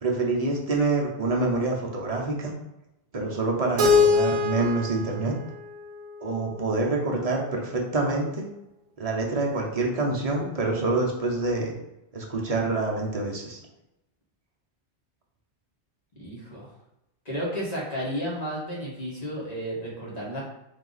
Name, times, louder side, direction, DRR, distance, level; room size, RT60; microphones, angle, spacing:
voice 1, 0.0-2.5 3.1-5.3 6.2-8.5 9.0-11.7 12.1-13.6, right 3 dB, 40° right, -1 dB, 0.7 m, -26 dB
Keyboard (musical), 3.8-6.7, left 4 dB, 90° right, 0.9 m, -24 dB
voice 2, 16.1-16.7 17.2-20.4, equal, 35° left, -5 dB, 1.4 m, -32 dB
3.7 x 2.9 x 3.9 m, 0.91 s
omnidirectional pair, 1.1 m